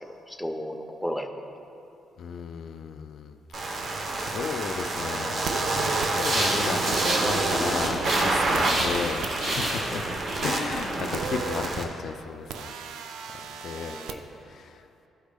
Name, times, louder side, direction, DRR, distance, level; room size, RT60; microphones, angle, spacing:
voice 1, 0.0-1.3 10.1-10.2 13.7-14.3, equal, 5° left, 3 dB, 0.5 m, -35 dB
voice 2, 2.2-3.9 4.2-5.9 6.2-10.1 10.4-12.7 13.6-14.0 14.5-14.8, left 6 dB, 65° left, 7 dB, 0.3 m, -34 dB
sound 1, 3.5-11.8, right 2 dB, 50° right, 0.7 m, -28 dB
sound 2, 5.4-6.1 6.9-7.6 8.5-9.3 11.1-11.7 12.5-14.1, right 6 dB, 85° right, 0.4 m, -35 dB
sound 3, 6.1-8.3 8.6-11.2, right 1 dB, 65° right, 1.5 m, -31 dB
13.0 x 4.7 x 2.2 m, 2.8 s
cardioid pair, 90°, 0 cm